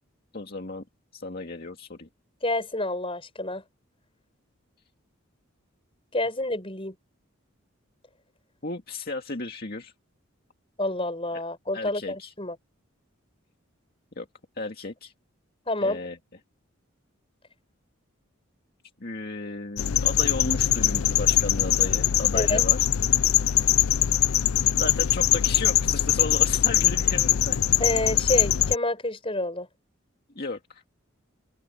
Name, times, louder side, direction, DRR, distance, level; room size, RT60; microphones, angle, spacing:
voice 1, 0.3-0.8 1.1-2.1 8.6-9.9 11.7-12.3 14.2-14.3 14.6-15.1 15.8-16.2 19.0-22.9 24.8-27.6 30.4-30.8, left 3 dB, 50° left, 2.2 m, -34 dB
voice 2, 2.4-3.6 6.1-6.9 10.8-12.6 15.7-16.0 22.3-22.6 27.8-29.7, left 1 dB, 25° left, 6.7 m, -28 dB
sound 1, 19.8-28.8, left 12 dB, 85° left, 0.5 m, -22 dB
open air
head